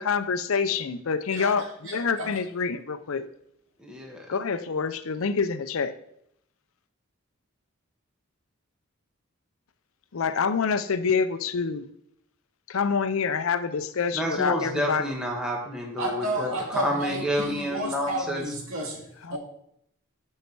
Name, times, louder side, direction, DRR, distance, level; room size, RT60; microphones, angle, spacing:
voice 1, 0.0-1.7 1.9-3.2 4.3-5.9 10.1-11.9 12.7-15.1 19.2-19.4, left 5 dB, 75° left, 12 dB, 0.5 m, -26 dB
voice 2, 1.3-2.3 16.0-19.4, right 1 dB, 70° right, 0 dB, 2.1 m, -32 dB
voice 3, 3.8-4.3 14.1-18.4, equal, 5° right, -1 dB, 1.2 m, -29 dB
8.2 x 5.5 x 4.7 m, 0.74 s
head